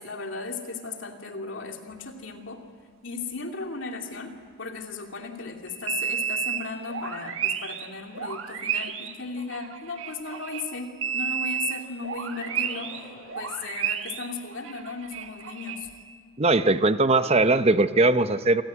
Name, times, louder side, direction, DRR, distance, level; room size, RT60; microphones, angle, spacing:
voice 1, 0.0-2.6 3.0-15.9, left 4 dB, 65° left, 3 dB, 2.8 m, -36 dB
sound 1, 5.7-16.1, right 8 dB, 75° right, 1.6 m, -32 dB
sound 2, 12.3-13.6, left 1 dB, 20° left, 6.3 m, -48 dB
voice 2, 16.4-18.6, right 2 dB, 30° right, 11 dB, 0.8 m, -20 dB
27.0 x 18.0 x 9.7 m, 2.2 s
head